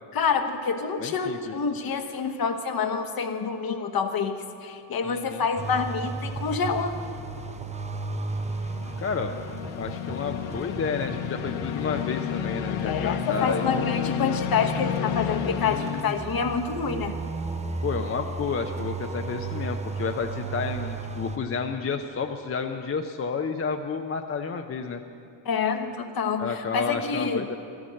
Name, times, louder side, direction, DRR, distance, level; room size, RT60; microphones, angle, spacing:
voice 1, 0.1-6.9 12.8-17.2 25.4-27.5, left 5 dB, 45° left, 7 dB, 1.1 m, -27 dB
voice 2, 1.0-1.5 5.0-5.4 9.0-9.3 9.8-13.8 15.6-16.2 17.8-25.0 26.4-27.6, left 5 dB, 30° left, 4 dB, 0.6 m, -31 dB
sound 1, 1.9-2.3 8.2-16.0, left 11 dB, 90° left, 0.7 m, -31 dB
sound 2, 5.6-21.4, right 3 dB, 15° right, 0.6 m, -35 dB
13.0 x 8.6 x 6.4 m, 2.6 s
supercardioid pair, 80°, 49 cm